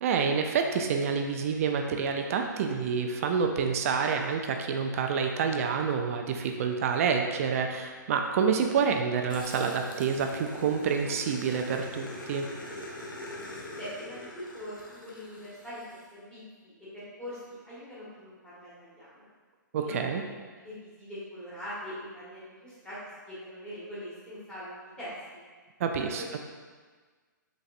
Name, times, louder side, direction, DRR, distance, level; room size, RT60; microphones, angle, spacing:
voice 1, 0.0-12.5 19.7-20.2 25.8-26.4, right 6 dB, 45° right, 4 dB, 0.4 m, -28 dB
Growling, 9.3-16.0, left 1 dB, 85° left, 0.7 m, -43 dB
voice 2, 13.8-19.3 19.8-20.0 20.3-20.4 20.6-25.1 26.0-26.4, equal, 5° left, -11 dB, 1.3 m, -42 dB
4.0 x 3.1 x 2.5 m, 1.5 s
hypercardioid pair, 130°, 11 cm